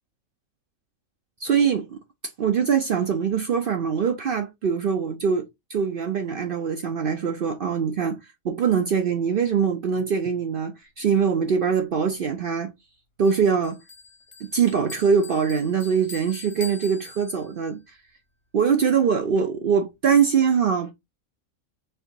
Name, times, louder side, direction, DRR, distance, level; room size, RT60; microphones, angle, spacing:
voice 1, 1.4-2.0 2.4-8.2 8.4-12.7 13.2-13.8 14.4-17.8 18.5-20.9, right 6 dB, 60° right, 0.6 m, -23 dB
Bell, 13.3-17.8, left 3 dB, 30° left, 0.6 m, -43 dB
4.5 x 2.6 x 3.8 m
omnidirectional pair, 1.4 m